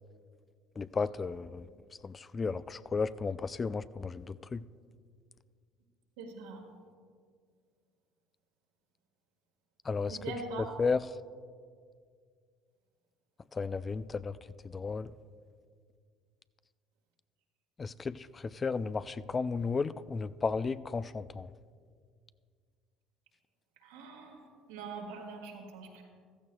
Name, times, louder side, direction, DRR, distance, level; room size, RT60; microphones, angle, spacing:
voice 1, 0.8-1.6 2.0-4.6 9.9-10.2 10.8-11.0 13.5-14.3 14.7-15.1 17.8-21.5, left 4 dB, 30° left, 16 dB, 0.3 m, -33 dB
voice 2, 6.2-6.6 10.1-10.7 23.8-24.4 24.7-26.0, right 3 dB, 80° right, 0 dB, 1.8 m, -42 dB
15.0 x 13.5 x 2.3 m, 2.1 s
hypercardioid pair, 65°, 0 cm